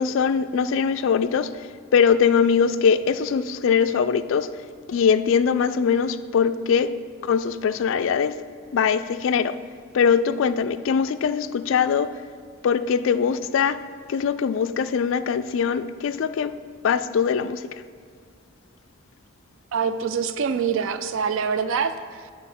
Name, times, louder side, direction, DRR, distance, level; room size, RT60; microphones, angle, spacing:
voice 1, 0.0-4.5 4.9-7.0 7.2-8.4 8.7-9.6 9.9-12.1 12.6-13.8 14.1-16.5 16.8-17.7, left 6 dB, 60° left, 13 dB, 0.3 m, -22 dB
voice 2, 19.7-22.3, right 6 dB, 65° right, 11 dB, 0.4 m, -25 dB
9.0 x 3.7 x 6.1 m, 2.1 s
head